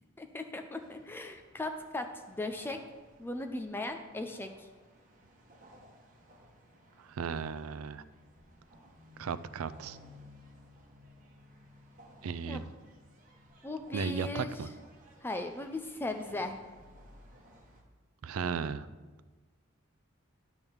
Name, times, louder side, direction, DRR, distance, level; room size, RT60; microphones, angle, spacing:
voice 1, 0.2-2.8 3.2-4.7 12.5-12.6 13.6-14.6 15.2-16.6, left 2 dB, 10° left, 6 dB, 0.4 m, -38 dB
sound 1, 0.7-17.8, equal, 40° right, 1.2 m, -58 dB
voice 2, 7.0-8.0 9.2-10.0 12.2-12.6 13.9-14.7 18.2-18.9, right 5 dB, 85° right, 14 dB, 0.4 m, -35 dB
10.5 x 3.6 x 7.0 m, 1.3 s
head